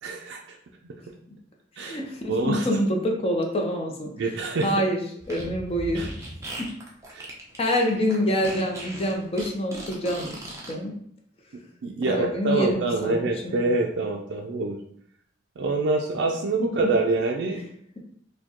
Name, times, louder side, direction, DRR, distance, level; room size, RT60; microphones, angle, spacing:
voice 1, 0.0-0.6 0.8-0.9 1.8-2.0 2.3-2.7 4.2-4.8 5.9-6.1 7.1-7.3 11.8-14.8 15.6-17.6, right 3 dB, 60° right, 0 dB, 0.4 m, -26 dB
voice 2, 1.8-4.1 4.6-5.0 5.3-6.0 6.6-6.7 7.6-10.4 10.7-10.9 12.1-13.5, equal, 30° left, 1 dB, 0.6 m, -26 dB
Fart, 5.2-10.7, right 1 dB, 15° right, 0.7 m, -38 dB
4.5 x 2.2 x 2.9 m, 0.66 s
head